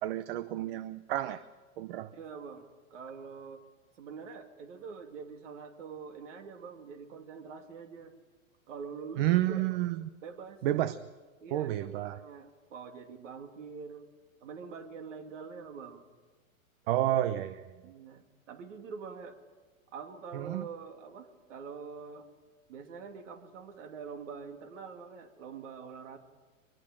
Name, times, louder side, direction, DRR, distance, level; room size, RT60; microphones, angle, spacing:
voice 1, 0.0-1.4 1.8-2.1 9.2-10.0 10.6-11.0 11.5-12.2 16.9-17.6 20.3-20.7, right 14 dB, 45° right, 14 dB, 0.8 m, -30 dB
voice 2, 2.1-3.6 4.0-8.2 8.7-9.6 10.2-10.6 11.4-14.1 14.4-16.0 17.8-19.4 19.9-22.3 22.7-26.2, right 5 dB, 60° right, 6 dB, 2.8 m, -45 dB
23.0 x 21.0 x 7.5 m, 1.3 s
hypercardioid pair, 140°, 42 cm